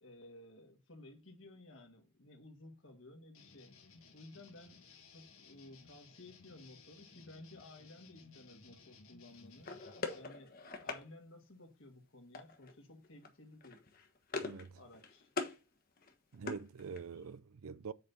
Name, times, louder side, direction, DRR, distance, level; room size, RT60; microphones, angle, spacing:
voice 1, 0.0-3.7 4.1-4.9 5.1-9.7 10.1-13.8 14.7-15.3, left 2 dB, 65° left, 1.8 m, -56 dB
sound 1, 3.3-10.2, left 4 dB, 85° left, 1.9 m, -60 dB
sound 2, 9.6-11.0 12.3-12.8 13.0-13.3 13.6-14.7 14.9-15.6 16.0-17.2, left 3 dB, 45° left, 1.2 m, -42 dB
voice 2, 14.4-14.8 16.3-17.9, right 5 dB, 85° right, 0.5 m, -45 dB
7.8 x 5.4 x 4.1 m
head